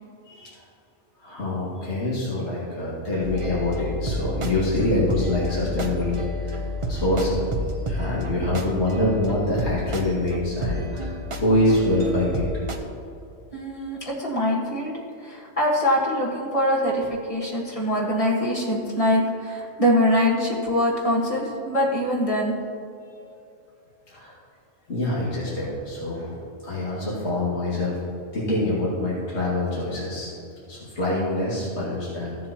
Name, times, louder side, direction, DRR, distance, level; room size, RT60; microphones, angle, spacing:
voice 1, 1.2-7.5 7.9-11.1 11.4-12.4 24.1-24.4 24.9-28.0 28.3-30.3 30.7-32.4, left 1 dB, 65° left, -8 dB, 2.5 m, -25 dB
sound 1, 3.2-12.8, left 2 dB, 30° right, 0.8 m, -31 dB
voice 2, 13.5-14.9 15.2-22.5, equal, 30° left, -5 dB, 1.7 m, -23 dB
15.0 x 7.3 x 3.0 m, 2.7 s
omnidirectional pair, 1.2 m